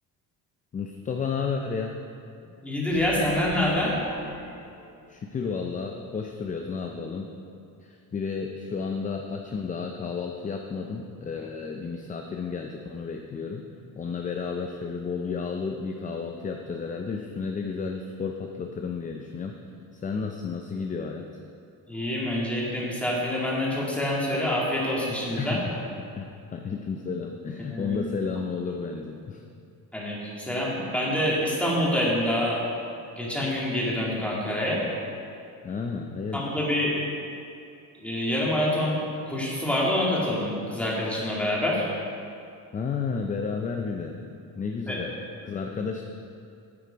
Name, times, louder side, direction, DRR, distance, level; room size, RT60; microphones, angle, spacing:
voice 1, 0.7-2.0 5.1-7.3 7.8-13.7 14.0-19.6 19.9-21.3 25.4-25.7 26.1-29.4 35.6-36.6 42.7-44.2 44.6-45.1 45.4-46.0, left 5 dB, 20° left, 3 dB, 0.4 m, -32 dB
voice 2, 2.6-3.9 21.9-25.6 27.7-28.0 29.9-32.6 33.2-34.8 36.3-37.0 38.0-39.0 39.3-41.9 44.9-45.0, left 1 dB, 5° left, -5 dB, 2.1 m, -26 dB
sound 1, 2.9-5.4, left 3 dB, 50° left, 1.3 m, -43 dB
8.6 x 8.1 x 5.1 m, 2.5 s
cardioid pair, 140°, 38 cm